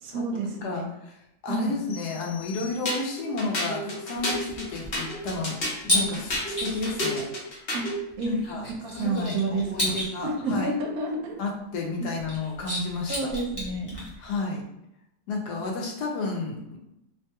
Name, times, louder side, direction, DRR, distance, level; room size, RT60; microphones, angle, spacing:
voice 1, 0.0-0.9 1.5-1.8 7.7-8.4 8.8-10.0 10.2-11.4 12.0-12.2 13.1-14.0, right 2 dB, 75° right, 2 dB, 1.0 m, -30 dB
voice 2, 1.4-5.6 5.8-7.3 8.2-8.7 8.9-10.7 11.4-13.3 14.2-14.6 15.3-16.8, left 3 dB, 90° left, 0 dB, 1.2 m, -31 dB
sound 1, 1.9-3.4, left 7 dB, 70° left, 1.6 m, -46 dB
sound 2, 2.8-8.0, left 1 dB, 45° left, 0.8 m, -31 dB
sound 3, 4.2-7.0 8.1-10.1 12.2-14.3, left 1 dB, 20° left, 1.0 m, -32 dB
3.0 x 2.2 x 2.8 m, 0.84 s
omnidirectional pair, 1.7 m